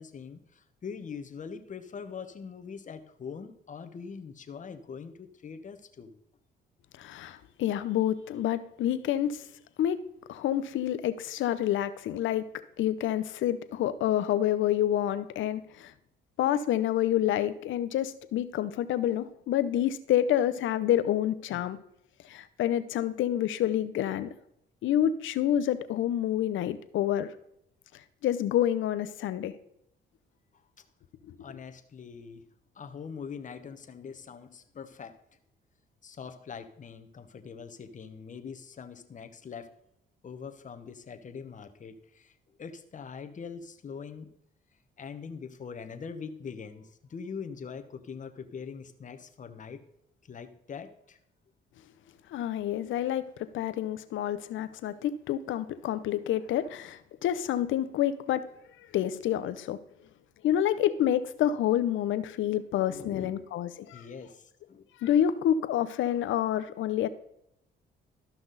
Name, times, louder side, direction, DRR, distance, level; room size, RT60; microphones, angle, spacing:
voice 1, 0.0-6.1 21.5-21.6 30.5-30.6 31.4-32.4 32.7-35.2 36.0-39.7 40.2-44.3 45.0-49.8 50.2-51.2 62.8-63.4 63.9-64.9, left 6 dB, 40° left, 7 dB, 1.0 m, -43 dB
voice 2, 7.0-9.4 9.8-10.0 10.3-12.4 12.8-15.9 16.4-21.8 22.3-24.3 24.8-27.3 28.2-29.6 31.3-31.4 52.3-58.5 58.9-59.8 60.4-64.0 65.0-67.1, left 11 dB, 80° left, 13 dB, 0.7 m, -28 dB
13.0 x 5.9 x 4.0 m, 0.76 s
cardioid pair, 90°, 20 cm